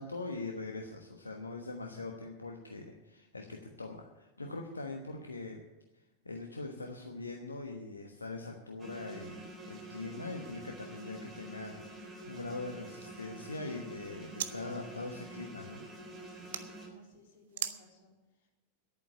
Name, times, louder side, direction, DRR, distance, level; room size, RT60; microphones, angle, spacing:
voice 1, 0.0-5.6 5.9-15.8, left 3 dB, 80° left, 2 dB, 1.2 m, -42 dB
sound 1, 8.8-16.9, right 1 dB, 25° right, 3.7 m, -48 dB
sound 2, 12.4-14.6 14.9-16.6 17.5-17.8, right 10 dB, 60° right, 0.8 m, -44 dB
voice 2, 16.8-18.5, equal, 50° left, -1 dB, 3.9 m, -61 dB
11.0 x 9.0 x 9.6 m, 1.1 s
figure-of-eight pair, 90°, 0 cm